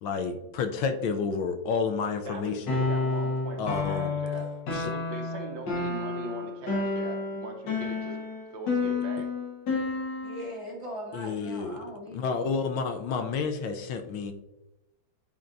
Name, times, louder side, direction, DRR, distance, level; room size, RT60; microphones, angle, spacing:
voice 1, 0.0-2.8 3.6-4.1 4.7-4.9 11.1-11.8 12.1-14.3, left 5 dB, 80° left, 6 dB, 1.4 m, -30 dB
voice 2, 2.3-8.2 8.5-9.3, right 3 dB, 70° right, 2 dB, 1.7 m, -40 dB
sound 1, 2.7-10.5, left 3 dB, 60° left, 2.0 m, -30 dB
voice 3, 10.2-12.7, equal, 20° right, -3 dB, 1.0 m, -40 dB
9.3 x 4.3 x 2.6 m, 0.93 s
omnidirectional pair, 2.2 m